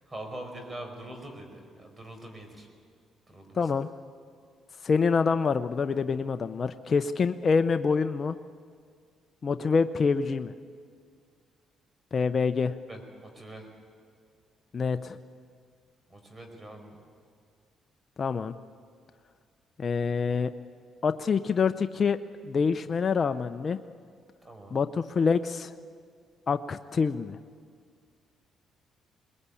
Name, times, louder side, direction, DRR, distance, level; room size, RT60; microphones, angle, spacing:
voice 1, 0.1-2.7 3.3-3.7 12.9-13.7 16.1-17.0 24.4-24.8, right 1 dB, 25° right, 4 dB, 5.1 m, -43 dB
voice 2, 3.5-3.9 4.8-8.4 9.4-10.5 12.1-12.7 14.7-15.2 18.2-18.5 19.8-20.5 21.0-22.2 22.5-23.8 24.7-25.7 26.5-27.4, left 5 dB, 40° left, 9 dB, 0.6 m, -26 dB
22.0 x 20.5 x 8.5 m, 2.1 s
cardioid pair, 90°, 0 cm